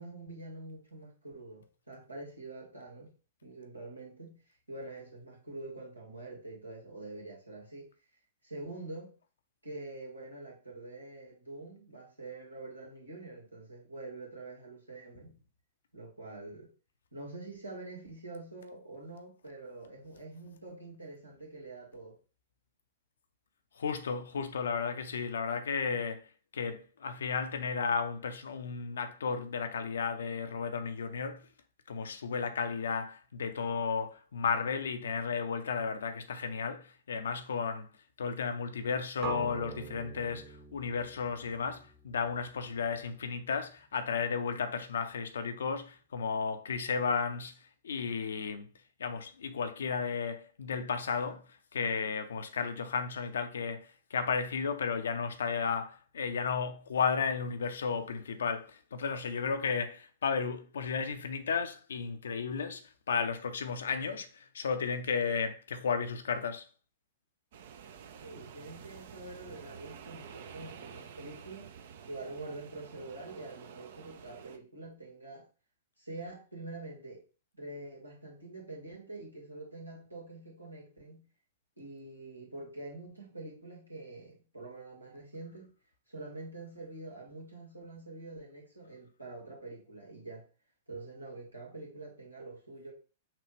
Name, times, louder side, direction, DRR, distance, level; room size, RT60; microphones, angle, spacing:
voice 1, 0.0-3.1 3.4-4.4 4.7-7.9 8.4-9.1 9.6-15.4 15.9-16.7 17.1-22.2 68.2-71.7 72.0-75.5 76.0-77.2 77.5-81.3 81.8-85.7 86.1-90.4 90.9-92.9, right 2 dB, 90° right, 1.6 m, -46 dB
voice 2, 23.8-26.2 26.5-31.4 31.9-37.9 38.2-47.5 47.8-48.7 49.0-51.4 51.7-66.7, left 5 dB, 65° left, 0.6 m, -33 dB
sound 1, 39.2-43.2, right 7 dB, 35° right, 1.0 m, -44 dB
sound 2, 67.5-74.6, right 7 dB, 55° right, 0.5 m, -50 dB
5.9 x 2.4 x 3.3 m
figure-of-eight pair, 105°, 0 cm